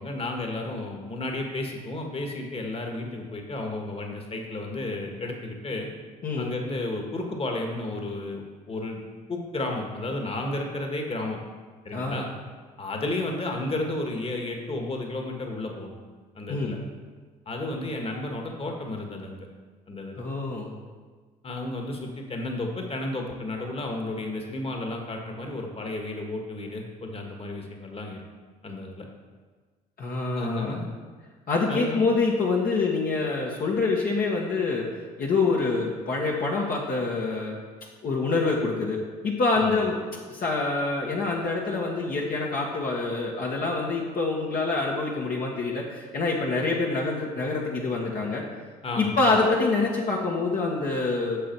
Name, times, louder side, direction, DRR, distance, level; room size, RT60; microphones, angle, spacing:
voice 1, 0.0-5.9 6.4-9.0 9.3-11.4 11.8-12.3 12.8-16.0 16.4-16.8 17.5-19.5 19.9-20.2 21.4-28.2 28.6-29.1 30.3-30.9 31.7-32.1 39.5-39.8 48.8-49.4, left 2 dB, 30° left, 2 dB, 1.9 m, -32 dB
voice 2, 6.2-6.6 11.9-12.2 16.5-16.7 20.1-20.7 30.0-30.8 31.5-34.9 35.2-37.6 38.0-40.0 40.3-48.4 49.0-51.4, left 3 dB, 45° left, -2 dB, 1.6 m, -26 dB
8.7 x 6.8 x 4.7 m, 1.4 s
hypercardioid pair, 60°, 20 cm